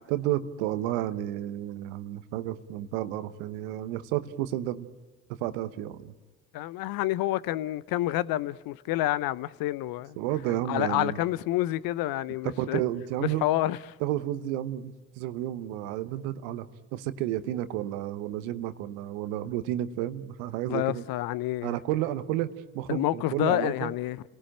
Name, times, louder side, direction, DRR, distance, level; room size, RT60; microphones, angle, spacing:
voice 1, 0.1-4.9 5.4-6.1 10.2-11.2 12.4-13.5 14.0-16.7 16.9-21.0 21.6-22.5 22.7-23.9, right 13 dB, 70° right, 1.1 m, -31 dB
voice 2, 6.5-10.2 10.7-12.8 13.2-13.8 20.7-21.7 22.9-24.2, left 15 dB, 60° left, 0.8 m, -28 dB
30.0 x 18.0 x 8.9 m
figure-of-eight pair, 45°, 40 cm